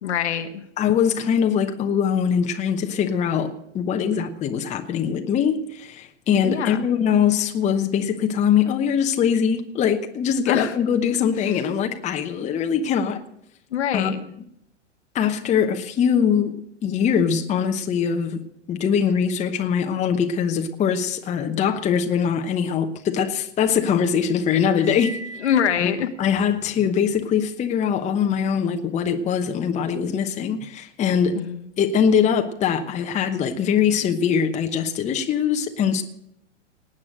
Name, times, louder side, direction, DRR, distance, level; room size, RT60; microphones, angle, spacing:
voice 1, 0.0-0.6 6.4-6.9 10.5-10.7 13.7-14.2 25.4-26.1 31.3-31.7, left 9 dB, 60° left, 7 dB, 1.3 m, -24 dB
voice 2, 0.8-13.2 13.9-14.1 15.1-18.4 18.7-25.2 25.8-25.9 26.2-31.4 31.8-36.0, left 7 dB, 20° left, 5 dB, 1.0 m, -22 dB
Cymbal, 24.7-26.2, right 2 dB, 5° right, 2.4 m, -39 dB
19.0 x 8.6 x 6.4 m, 0.76 s
figure-of-eight pair, 105°, 37 cm